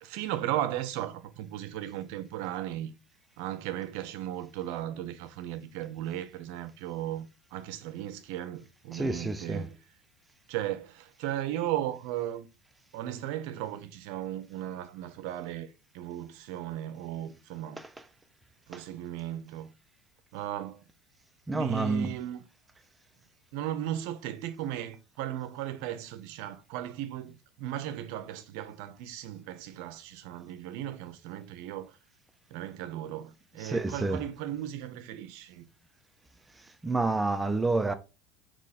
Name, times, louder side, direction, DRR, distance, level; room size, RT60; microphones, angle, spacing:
voice 1, 0.0-2.9 3.4-7.3 7.5-9.8 10.5-12.5 12.9-17.8 18.7-19.7 20.3-20.8 21.5-22.4 23.5-32.0 32.5-35.6, right 12 dB, 70° right, 0.7 m, -36 dB
voice 2, 8.9-9.7 17.8-17.9 18.7-18.8 21.5-22.1 33.6-34.2 36.6-37.9, right 3 dB, 10° right, 0.5 m, -29 dB
3.7 x 3.1 x 4.2 m
supercardioid pair, 110°, 0 cm